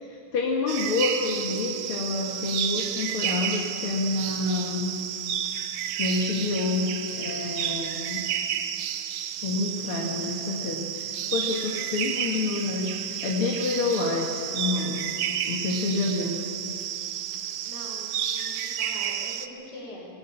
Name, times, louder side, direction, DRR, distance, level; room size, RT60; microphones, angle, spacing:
voice 1, 0.0-5.0 6.0-6.9 7.2-8.3 9.4-15.1 15.5-16.4, left 3 dB, 85° left, -2 dB, 2.8 m, -28 dB
sound 1, 0.7-19.5, right 9 dB, 80° right, 1.7 m, -31 dB
voice 2, 17.6-20.1, left 1 dB, 50° left, -3 dB, 6.6 m, -43 dB
19.5 x 18.0 x 8.7 m, 2.9 s
omnidirectional pair, 2.3 m